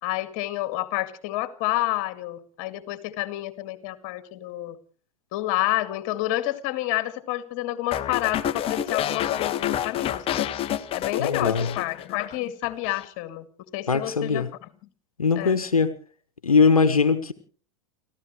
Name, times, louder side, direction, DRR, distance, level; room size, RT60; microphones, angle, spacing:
voice 1, 0.0-4.8 5.3-10.5 10.9-13.5 13.7-14.5 15.4-15.6, left 16 dB, 45° left, 11 dB, 2.2 m, -29 dB
sound 1, 7.9-12.4 12.6-13.0, left 11 dB, 30° left, 1.2 m, -28 dB
voice 2, 11.2-11.7 13.9-14.5 15.2-16.0 16.4-17.3, left 5 dB, 85° left, 12 dB, 1.2 m, -21 dB
29.5 x 15.0 x 3.2 m, 0.42 s
figure-of-eight pair, 90°, 18 cm